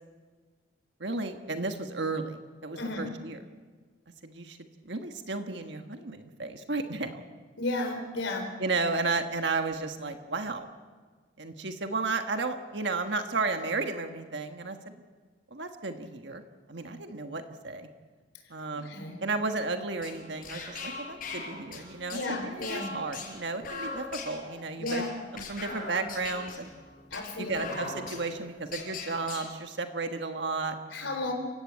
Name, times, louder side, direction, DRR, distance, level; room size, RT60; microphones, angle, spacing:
voice 1, 1.0-3.4 4.2-4.6 4.8-7.2 8.6-10.7 11.4-14.9 15.5-16.4 16.7-17.9 18.5-18.9 19.2-25.0 25.3-26.7 27.4-31.2, right 3 dB, 65° right, 6 dB, 1.5 m, -33 dB
voice 2, 2.7-3.1 7.6-8.5 18.7-19.2 22.1-22.9 24.8-25.1 27.1-27.8 30.9-31.3, left 2 dB, 80° left, 4 dB, 4.2 m, -33 dB
sound 1, 19.9-29.5, left 3 dB, 45° left, 5.9 m, -41 dB
29.5 x 16.0 x 8.7 m, 1.5 s
head